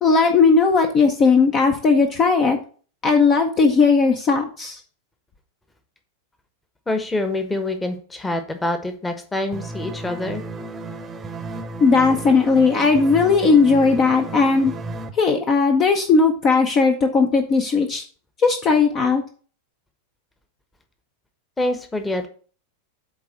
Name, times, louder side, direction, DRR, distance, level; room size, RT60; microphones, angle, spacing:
voice 1, 0.0-2.6 3.0-4.8 11.8-14.7 15.1-18.0 18.4-19.2, left 4 dB, 30° left, 6 dB, 0.8 m, -17 dB
voice 2, 6.9-10.4 21.6-22.3, left 2 dB, 10° left, 8 dB, 1.2 m, -26 dB
sound 1, 9.5-15.1, right 3 dB, 20° right, 0.9 m, -33 dB
8.5 x 3.6 x 6.4 m, 0.41 s
figure-of-eight pair, 90°, 0 cm